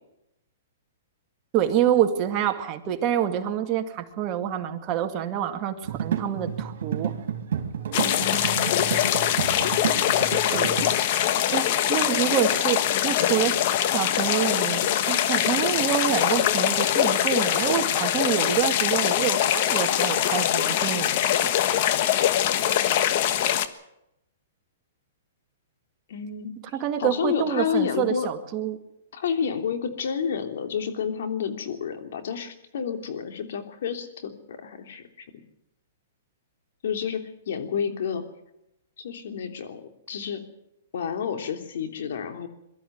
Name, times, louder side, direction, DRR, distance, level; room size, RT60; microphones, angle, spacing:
voice 1, 1.5-7.1 10.2-10.8 11.5-13.6 13.9-21.5 26.7-28.8, right 10 dB, 30° right, 5 dB, 2.1 m, -27 dB
sound 1, 5.8-10.9, right 8 dB, 70° right, 3.2 m, -30 dB
voice 2, 7.9-9.2 26.1-26.5 27.0-28.3 29.1-35.3 36.8-38.2 39.0-40.4 40.9-42.5, left 7 dB, 70° left, 6 dB, 3.2 m, -30 dB
sound 2, 7.9-23.7, left 11 dB, 50° left, 1.3 m, -23 dB
23.0 x 13.0 x 9.2 m, 0.85 s
hypercardioid pair, 145°, 0 cm